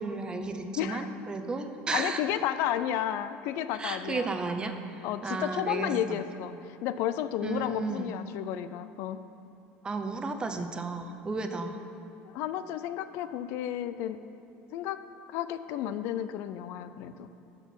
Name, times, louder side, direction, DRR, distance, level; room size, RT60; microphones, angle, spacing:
voice 1, 0.0-2.2 3.8-6.2 7.4-8.2 9.8-11.8, right 3 dB, 20° right, 6 dB, 0.7 m, -33 dB
voice 2, 0.8-1.1 1.9-4.3 5.0-9.2 12.2-14.2 14.7-15.0 15.3-17.3, left 11 dB, 65° left, 12 dB, 0.4 m, -32 dB
12.5 x 4.5 x 5.9 m, 2.9 s
cardioid pair, 135°, 4 cm